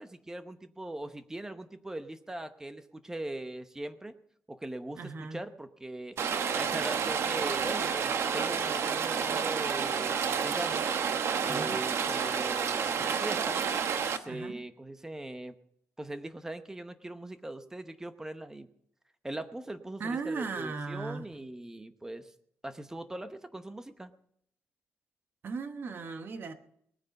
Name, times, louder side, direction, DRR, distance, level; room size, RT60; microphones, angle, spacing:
voice 1, 0.0-4.2 4.5-6.2 6.5-10.9 11.4-13.6 14.1-15.6 16.0-18.7 19.2-22.3 22.6-24.1, right 1 dB, 10° right, 0.8 m, -40 dB
voice 2, 5.0-5.4 11.5-11.8 14.3-14.6 20.0-21.3 25.4-26.5, right 4 dB, 45° right, 1.1 m, -37 dB
Rain, 6.2-14.2, right 6 dB, 65° right, 0.9 m, -30 dB
20.0 x 9.3 x 5.3 m
wide cardioid pair, 165°, 5 cm